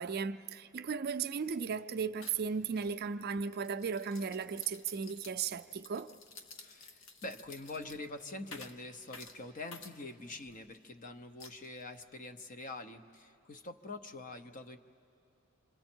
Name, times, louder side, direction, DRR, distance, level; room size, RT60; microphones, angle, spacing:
voice 1, 0.0-6.1, right 6 dB, 50° right, 0.4 m, -36 dB
sound 1, 1.1-1.2 1.5-1.8 2.2-10.8 11.4-12.1, left 4 dB, 75° left, 1.1 m, -53 dB
voice 2, 6.6-14.8, left 2 dB, 40° left, 0.8 m, -45 dB
27.0 x 26.5 x 4.5 m
head